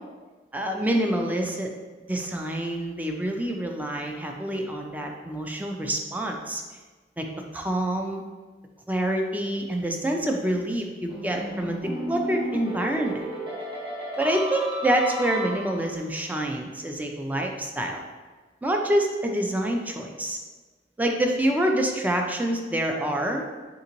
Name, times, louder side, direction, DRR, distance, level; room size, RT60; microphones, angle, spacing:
voice 1, 0.5-1.7 2.1-6.6 7.2-7.3 7.5-8.2 8.9-13.2 14.2-18.1 18.6-20.4 21.0-23.4, right 1 dB, 10° right, 2 dB, 0.4 m, -26 dB
sound 1, 11.1-16.0, equal, 30° right, 0.8 m, -34 dB
3.8 x 3.6 x 2.9 m, 1.3 s
head